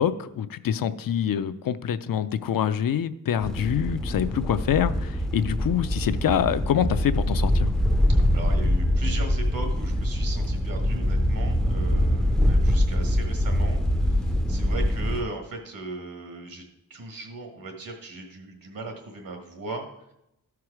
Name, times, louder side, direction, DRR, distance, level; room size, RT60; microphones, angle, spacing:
voice 1, 0.0-7.7, left 9 dB, 70° left, 12 dB, 0.5 m, -25 dB
sound 1, 3.4-15.2, equal, ahead, 0.4 m, -24 dB
voice 2, 8.1-16.6 16.9-19.9, right 2 dB, 70° right, 3 dB, 1.6 m, -37 dB
13.5 x 4.7 x 4.8 m, 0.85 s
wide cardioid pair, 140°, 35 cm